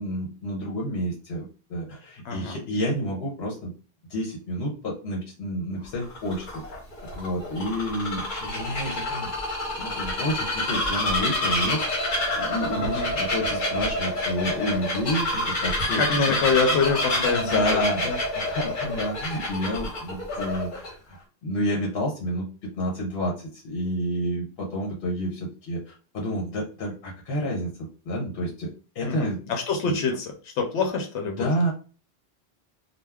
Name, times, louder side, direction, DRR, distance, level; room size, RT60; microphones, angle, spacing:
voice 1, 0.0-3.7 4.1-6.5 7.2-9.3 9.8-11.8 12.4-16.4 17.1-18.1 18.4-21.2 21.4-28.7 28.9-29.5 29.8-30.0 31.4-31.7, equal, 65° left, -2 dB, 0.9 m, -29 dB
voice 2, 2.2-2.6 12.8-13.2 16.0-18.2 29.1-31.5, left 4 dB, 90° left, 2 dB, 0.9 m, -26 dB
Bird vocalization bird call bird song, 5.9-20.9, left 1 dB, 50° left, 1.0 m, -28 dB
2.3 x 2.2 x 3.4 m, 0.37 s
omnidirectional pair, 1.1 m